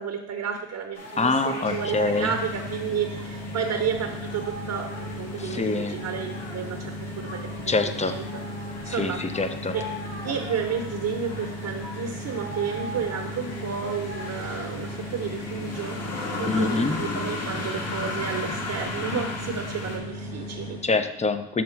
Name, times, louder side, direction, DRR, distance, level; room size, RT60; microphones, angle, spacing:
voice 1, 0.0-4.9 5.2-8.2 8.8-9.2 9.7-9.8 10.2-16.0 16.3-20.8, right 7 dB, 50° right, 4 dB, 0.9 m, -31 dB
sound 1, 0.9-20.0, left 2 dB, 45° left, 2.2 m, -37 dB
voice 2, 1.2-2.3 5.4-6.1 7.7-8.2 8.9-9.8 16.5-17.1 20.8-21.6, left 3 dB, 20° left, 9 dB, 0.7 m, -25 dB
sound 2, 1.6-20.9, left 1 dB, 85° left, 1.8 m, -36 dB
5.9 x 3.7 x 5.7 m, 0.83 s
hypercardioid pair, 55°, 35 cm